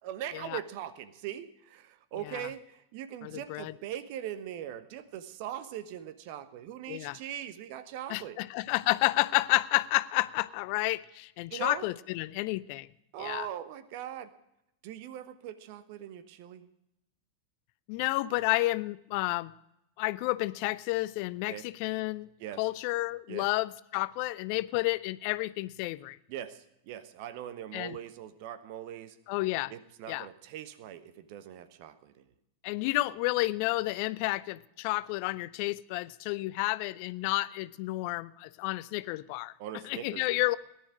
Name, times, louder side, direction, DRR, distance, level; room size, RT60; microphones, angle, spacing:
voice 1, 0.0-8.4 11.5-11.9 13.1-14.3 14.8-16.7 21.5-21.7 22.4-22.6 23.3-23.5 26.3-29.2 29.7-32.3 39.6-40.5, right 11 dB, 45° right, 1.1 m, -41 dB
voice 2, 3.2-3.7 6.9-7.2 8.1-12.9 13.2-13.5 17.9-19.5 20.0-22.3 22.6-26.2 27.7-28.0 29.3-29.7 30.1-30.3 32.6-39.5 39.8-40.6, left 20 dB, 45° left, 0.4 m, -30 dB
18.0 x 11.0 x 4.9 m
figure-of-eight pair, 90°, 0 cm